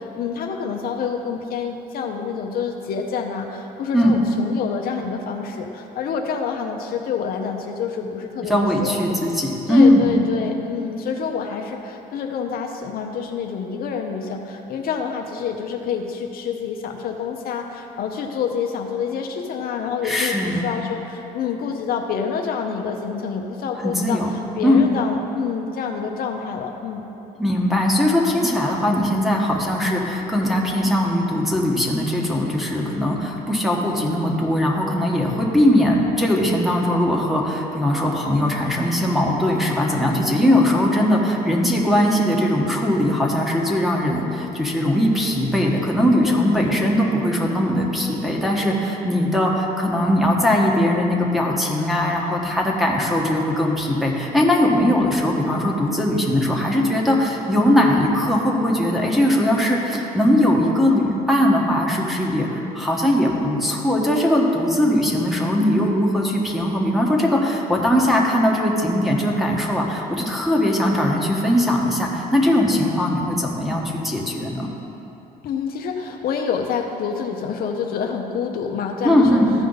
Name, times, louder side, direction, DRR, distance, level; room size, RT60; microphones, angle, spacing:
voice 1, 0.0-9.0 9.7-27.0 46.2-46.5 54.8-55.1 65.6-65.9 72.7-73.0 75.4-79.4, left 6 dB, 60° left, 3 dB, 0.7 m, -27 dB
voice 2, 8.4-10.2 20.0-20.7 23.8-24.3 24.6-24.8 27.4-74.7 79.0-79.5, left 1 dB, ahead, -1 dB, 1.2 m, -20 dB
14.0 x 5.0 x 4.0 m, 3.0 s
cardioid pair, 110°, 17 cm